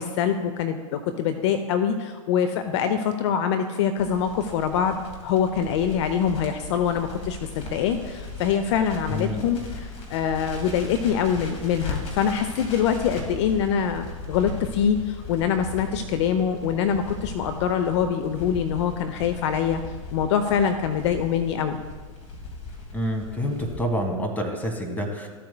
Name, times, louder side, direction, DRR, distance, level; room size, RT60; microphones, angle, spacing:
voice 1, 0.0-19.8 20.1-21.8, left 8 dB, 55° left, 8 dB, 0.6 m, -24 dB
Crackle, 4.0-23.8, left 3 dB, 35° left, 2.1 m, -38 dB
voice 2, 9.1-9.4 22.9-25.3, equal, 10° left, 3 dB, 1.5 m, -27 dB
14.0 x 7.6 x 2.2 m, 1.5 s
figure-of-eight pair, 95°, 18 cm